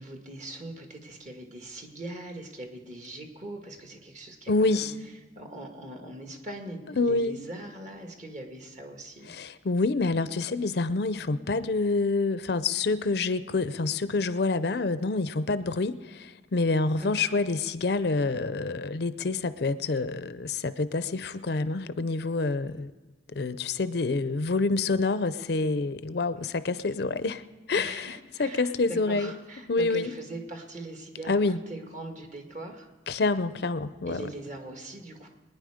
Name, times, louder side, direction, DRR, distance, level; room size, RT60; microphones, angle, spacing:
voice 1, 0.0-9.3 17.0-17.3 27.7-32.9 34.1-35.3, right 2 dB, 40° right, 3 dB, 2.0 m, -41 dB
voice 2, 4.5-4.9 7.0-7.4 9.3-22.9 23.3-27.4 27.7-28.1 28.4-29.3 29.7-30.1 31.3-31.6 33.1-34.2, left 3 dB, 60° left, 13 dB, 0.5 m, -27 dB
23.5 x 9.9 x 5.0 m, 1.3 s
head